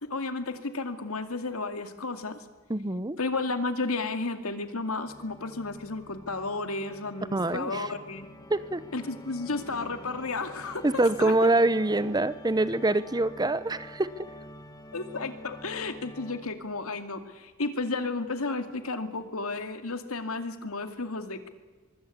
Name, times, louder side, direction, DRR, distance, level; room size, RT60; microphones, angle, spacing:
voice 1, 0.0-2.4 3.2-8.3 8.9-11.3 14.9-21.5, left 3 dB, 80° left, 8 dB, 2.4 m, -33 dB
voice 2, 2.7-3.2 7.3-7.9 8.5-8.9 10.8-14.1, right 2 dB, 20° right, 15 dB, 0.8 m, -25 dB
Organ, 5.0-16.8, equal, 20° left, 1.5 m, -47 dB
24.5 x 23.5 x 8.6 m, 1.3 s
head